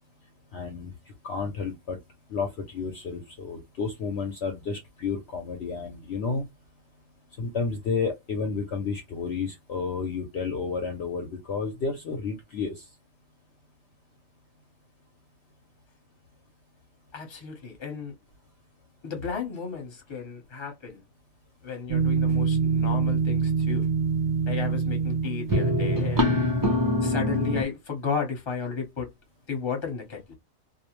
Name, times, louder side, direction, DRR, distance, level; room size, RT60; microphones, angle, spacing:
voice 1, 0.5-0.9 1.2-2.0 2.3-6.5 7.4-12.8, left 5 dB, 60° left, 0.8 m, -31 dB
voice 2, 17.1-18.1 19.0-21.0 21.6-23.9 24.5-26.5 27.0-29.1 29.5-30.2, left 5 dB, 25° left, 0.8 m, -34 dB
sound 1, 21.9-27.6, right 2 dB, 30° right, 0.4 m, -24 dB
2.5 x 2.0 x 2.9 m
omnidirectional pair, 1.4 m